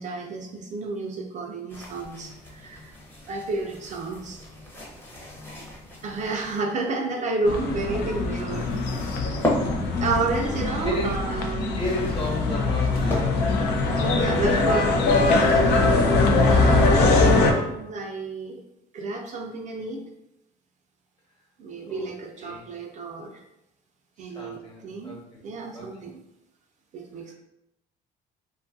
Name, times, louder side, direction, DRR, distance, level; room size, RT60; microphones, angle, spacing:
voice 1, 0.0-2.9 3.3-4.4 6.0-8.7 10.0-11.8 14.1-15.0 15.4-16.0 16.5-18.6 18.9-20.1 21.6-23.4 24.2-26.2 26.9-27.3, right 3 dB, 45° right, 2 dB, 0.4 m, -31 dB
sound 1, 1.7-6.6 7.6-13.6, left 1 dB, 10° left, 0.7 m, -36 dB
sound 2, 7.4-17.5, left 3 dB, 85° left, 0.4 m, -22 dB
voice 2, 10.8-11.2 11.8-13.7 21.9-22.1 22.4-22.6 24.2-25.4 25.7-25.9, left 1 dB, 30° left, -3 dB, 1.0 m, -33 dB
2.6 x 2.3 x 2.5 m, 0.85 s
cardioid pair, 110°, 17 cm